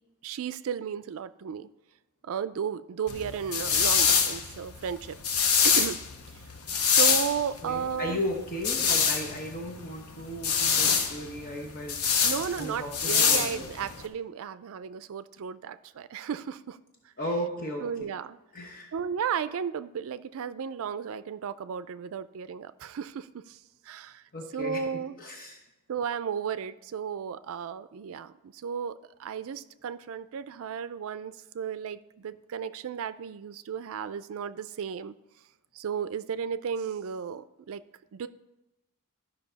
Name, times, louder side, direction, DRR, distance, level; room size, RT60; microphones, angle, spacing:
voice 1, 0.2-1.7 2.2-5.2 5.6-6.0 6.3-6.5 6.8-8.2 12.2-16.8 17.8-18.4 18.9-24.2 24.5-25.1 25.9-28.9 29.2-35.2 35.7-37.8 38.1-38.3, right 7 dB, 65° right, 14 dB, 0.4 m, -34 dB
sound 1, 3.1-14.0, left 6 dB, 75° left, 0.9 m, -26 dB
voice 2, 7.6-13.7 17.2-18.1 18.5-18.9 24.3-25.6, left 1 dB, 40° left, 0 dB, 1.1 m, -36 dB
12.5 x 5.5 x 4.0 m, 0.96 s
head